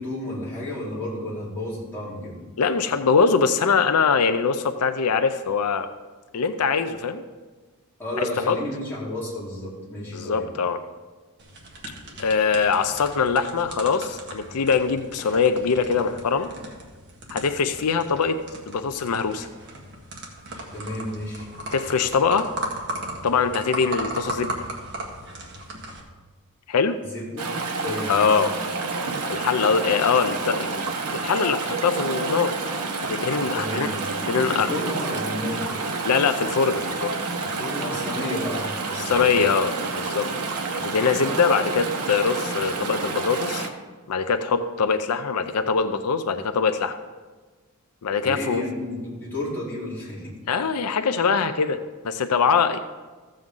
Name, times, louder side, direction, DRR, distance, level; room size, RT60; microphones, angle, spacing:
voice 1, 0.0-2.4 8.0-10.5 20.7-21.5 27.0-27.5 27.8-28.5 33.5-35.7 37.4-39.4 48.2-50.3, left 1 dB, 10° left, -9 dB, 3.7 m, -32 dB
voice 2, 2.6-5.9 6.3-7.2 8.2-8.6 10.1-10.8 12.2-16.5 17.3-18.4 18.7-19.5 21.7-22.5 23.2-24.6 26.7-27.0 28.1-28.5 29.3-30.8 31.1-32.5 33.0-33.9 34.3-34.7 36.0-37.1 39.0-40.3 40.7-43.7 44.1-47.0 48.0-48.6 50.5-52.8, left 5 dB, 85° left, 9 dB, 0.5 m, -23 dB
sound 1, 11.4-26.0, right 1 dB, 50° right, 1.6 m, -37 dB
Chatter / Stream, 27.4-43.7, right 3 dB, 80° right, 1.0 m, -29 dB
14.0 x 7.6 x 3.8 m, 1.3 s
head